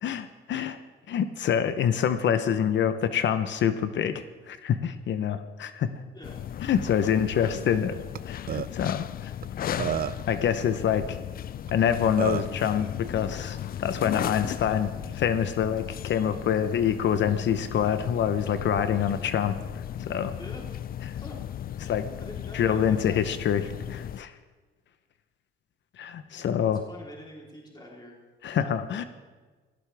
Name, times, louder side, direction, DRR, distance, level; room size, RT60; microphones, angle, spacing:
voice 1, 0.0-0.8 1.1-5.9 6.7-8.0 8.3-9.3 9.6-10.0 10.3-11.2 11.7-20.3 21.8-22.1 22.5-24.3 26.0-26.8 28.4-29.0, left 8 dB, 65° left, 11 dB, 0.9 m, -26 dB
sound 1, 6.2-24.2, left 10 dB, 50° left, 0.4 m, -36 dB
Burping eructation, 8.1-8.2 8.5-8.7 9.4-9.5 9.8-10.3 11.7-11.8 12.2-12.5, right 9 dB, 50° right, 0.6 m, -29 dB
voice 2, 22.1-23.5 26.4-28.2, left 1 dB, 20° left, -2 dB, 3.7 m, -45 dB
17.5 x 17.0 x 3.5 m, 1.4 s
cardioid pair, 90°, 20 cm